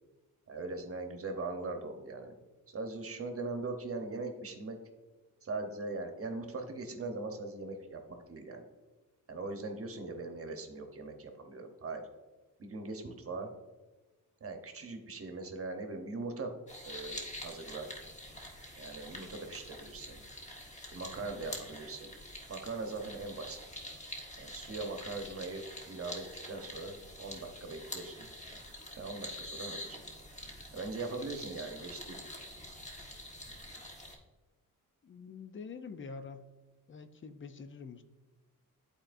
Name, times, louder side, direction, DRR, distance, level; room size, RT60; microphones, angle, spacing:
voice 1, 0.5-2.4 2.7-4.8 5.4-8.0 8.3-8.7 9.3-12.0 12.6-13.5 14.4-16.5 16.8-17.9 18.8-20.2 20.9-22.1 22.5-23.6 24.4-28.3 29.0-30.0 30.7-32.2, right 3 dB, 40° right, 4 dB, 1.0 m, -40 dB
sound 1, 16.7-34.2, left 1 dB, 20° left, 1.2 m, -46 dB
voice 2, 35.0-36.5 36.9-38.0, left 5 dB, 35° left, 8 dB, 0.5 m, -46 dB
11.5 x 4.3 x 2.6 m, 1.2 s
wide cardioid pair, 135°, 34 cm